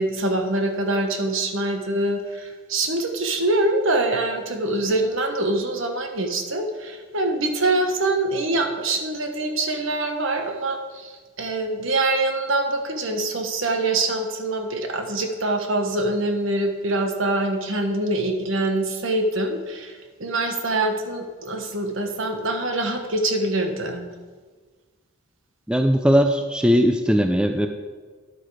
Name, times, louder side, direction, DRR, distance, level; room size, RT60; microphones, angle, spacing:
voice 1, 0.0-24.1, right 2 dB, 60° right, 4 dB, 1.3 m, -24 dB
voice 2, 25.7-27.7, equal, 5° right, 6 dB, 0.4 m, -19 dB
11.0 x 8.0 x 4.9 m, 1.4 s
head